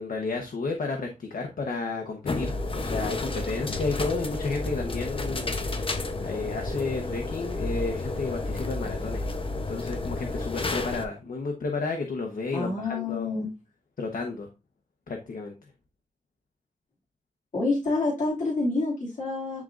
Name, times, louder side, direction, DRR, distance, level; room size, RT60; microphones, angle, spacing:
voice 1, 0.0-9.3 9.5-13.5 14.0-14.5 15.1-15.5, left 3 dB, 85° left, 1.1 m, -32 dB
sound 1, 2.3-11.1, left 2 dB, 40° left, 0.8 m, -31 dB
voice 2, 12.5-13.5 17.5-19.6, left 3 dB, 65° left, 2.5 m, -27 dB
10.5 x 3.8 x 2.6 m
wide cardioid pair, 120°, 14 cm